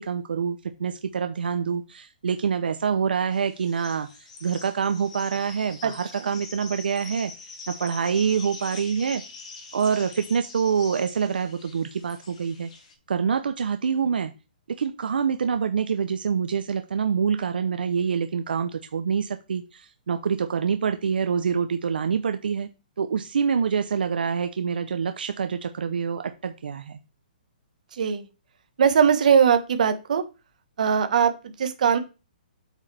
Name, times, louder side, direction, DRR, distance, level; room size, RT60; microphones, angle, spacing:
voice 1, 0.0-7.3 7.7-9.2 9.7-12.7 13.1-14.3 14.7-22.7 23.0-27.0, right 6 dB, 80° right, 8 dB, 0.8 m, -26 dB
sound 1, 3.3-12.9, left 4 dB, 45° left, 2.1 m, -44 dB
voice 2, 28.8-30.2 30.8-32.0, right 7 dB, 55° right, 8 dB, 1.4 m, -20 dB
8.2 x 6.2 x 3.4 m, 0.30 s
hypercardioid pair, 175°, 5 cm